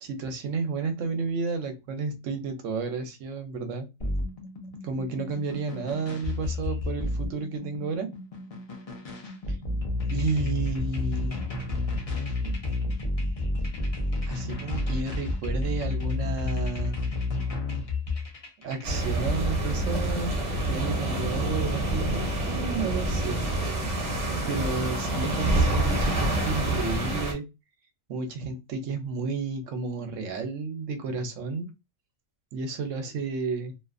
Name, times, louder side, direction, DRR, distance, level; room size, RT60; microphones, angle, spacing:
voice 1, 0.0-3.9 4.8-8.1 10.1-12.0 12.4-12.6 14.3-17.0 18.6-20.4 20.6-23.5 24.5-27.4 28.1-31.7 32.5-33.7, right 4 dB, 75° right, 1.0 m, -32 dB
sound 1, 4.0-18.9, left 2 dB, 40° left, 0.5 m, -31 dB
sound 2, 18.8-27.3, right 1 dB, 40° right, 0.8 m, -27 dB
2.5 x 2.4 x 2.4 m
omnidirectional pair, 1.3 m